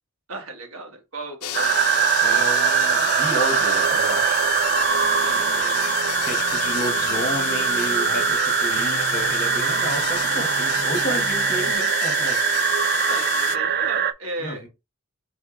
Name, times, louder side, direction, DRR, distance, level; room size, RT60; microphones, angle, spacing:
voice 1, 0.3-1.7 5.1-5.9 13.1-14.7, right 2 dB, 70° right, 1.5 m, -36 dB
sound 1, 1.4-13.6, left 14 dB, 85° left, 0.4 m, -30 dB
sound 2, 1.5-14.1, right 9 dB, 45° right, 0.4 m, -22 dB
voice 2, 2.2-4.4 6.2-12.4 14.4-14.7, equal, 45° left, 1.6 m, -31 dB
sound 3, 4.9-8.4 8.7-11.7, right 1 dB, 5° right, 1.3 m, -41 dB
3.9 x 3.3 x 3.8 m
head